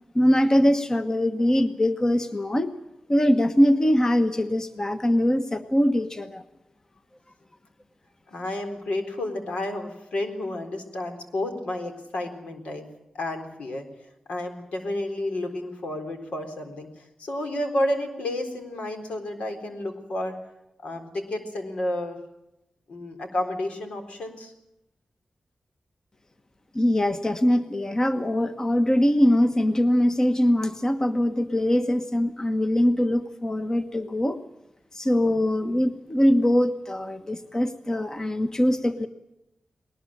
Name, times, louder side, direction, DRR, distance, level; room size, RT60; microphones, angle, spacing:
voice 1, 0.1-2.7 3.1-6.4 26.7-34.4 34.9-39.1, left 1 dB, 30° left, 9 dB, 1.3 m, -22 dB
voice 2, 8.3-12.9 13.1-13.9 14.3-20.4 20.8-22.2 22.9-24.5 35.2-35.3 35.6-35.8, left 1 dB, 90° left, 5 dB, 3.9 m, -31 dB
20.5 x 19.5 x 8.7 m, 0.89 s
wide cardioid pair, 85°, 2 cm